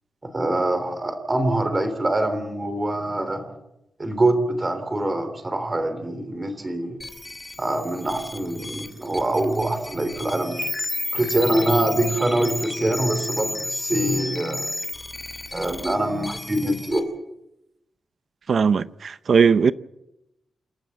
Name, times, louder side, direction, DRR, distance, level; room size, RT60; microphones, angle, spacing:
voice 1, 0.2-3.4 4.0-7.0 7.6-10.6 11.1-14.7 15.5-17.1, right 1 dB, 20° right, 3.3 m, -24 dB
sound 1, 7.0-17.0, left 2 dB, 15° left, 2.6 m, -32 dB
voice 2, 18.5-19.7, right 6 dB, 50° right, 0.7 m, -18 dB
28.5 x 12.0 x 8.0 m
wide cardioid pair, 155°, 0 cm